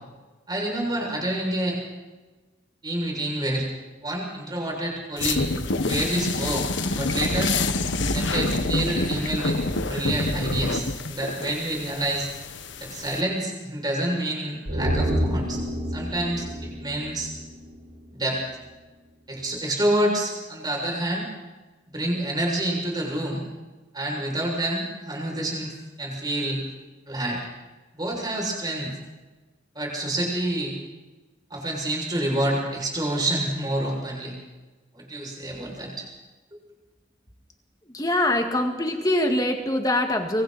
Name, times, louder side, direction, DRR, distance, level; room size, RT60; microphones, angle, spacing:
voice 1, 0.5-1.8 2.8-3.7 4.0-5.4 5.7-6.7 6.9-7.5 8.1-12.3 12.8-15.6 15.9-17.3 18.1-18.4 19.3-21.3 21.9-23.4 23.9-26.6 27.1-27.4 27.9-28.9 29.7-30.7 31.5-34.3 34.9-36.1, right 1 dB, 20° right, -1 dB, 6.8 m, -28 dB
sound 1, 5.2-13.2, left 2 dB, 80° left, 1.5 m, -27 dB
sound 2, 14.6-18.0 18.3-18.4, equal, 70° right, 6.9 m, -28 dB
voice 2, 37.9-40.4, left 1 dB, 20° left, 4 dB, 2.0 m, -23 dB
25.5 x 25.0 x 4.3 m, 1.2 s
head